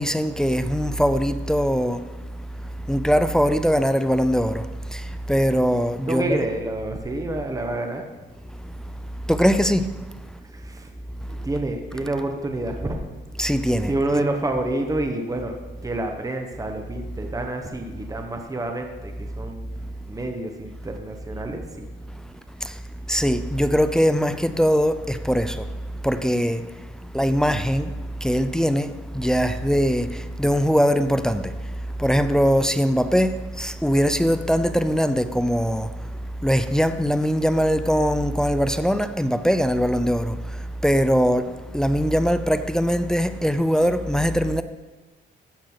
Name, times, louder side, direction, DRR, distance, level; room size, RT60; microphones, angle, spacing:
voice 1, 0.0-2.0 2.9-4.6 4.9-5.0 5.3-6.4 9.3-9.9 13.4-13.9 23.1-25.6 26.0-26.6 27.1-27.9 28.2-30.1 30.4-31.5 32.0-35.9 36.4-40.4 40.8-44.6, equal, 5° left, 0.5 m, -21 dB
voice 2, 6.1-8.0 10.5-10.9 11.2-13.0 13.8-15.6 15.8-19.7 20.0-21.9, right 2 dB, 15° right, 1.3 m, -28 dB
15.0 x 6.4 x 4.1 m
cardioid pair, 90°, 20 cm